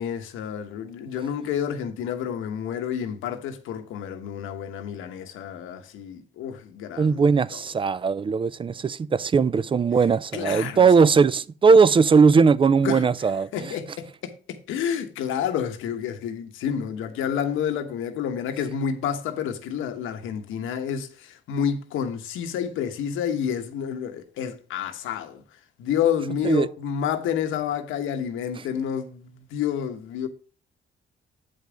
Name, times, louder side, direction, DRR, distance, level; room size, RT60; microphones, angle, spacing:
voice 1, 0.0-7.6 10.3-10.9 12.8-13.1 13.5-25.4 25.8-30.3, left 8 dB, 90° left, 1.1 m, -29 dB
voice 2, 7.0-13.7 26.4-26.7, right 5 dB, 25° right, 0.4 m, -19 dB
7.9 x 5.3 x 5.0 m
cardioid pair, 90°, 20 cm